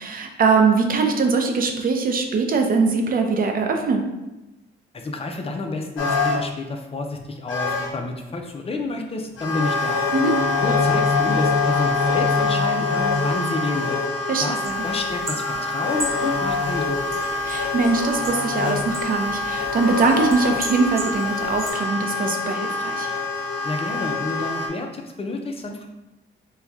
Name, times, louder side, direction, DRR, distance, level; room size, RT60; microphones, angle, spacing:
voice 1, 0.0-4.0 10.1-10.3 14.3-14.8 17.4-23.1, right 4 dB, 45° right, 4 dB, 0.6 m, -22 dB
voice 2, 4.9-10.0 10.6-14.0 14.4-17.1 23.6-25.9, left 2 dB, 30° left, 3 dB, 0.6 m, -29 dB
sound 1, 6.0-6.5 7.1-7.2 7.5-7.9 9.4-24.7, left 3 dB, 75° left, 1.0 m, -24 dB
sound 2, 14.6-21.7, right 1 dB, 30° right, 1.2 m, -36 dB
4.3 x 2.3 x 3.5 m, 1.0 s
cardioid pair, 90°, 20 cm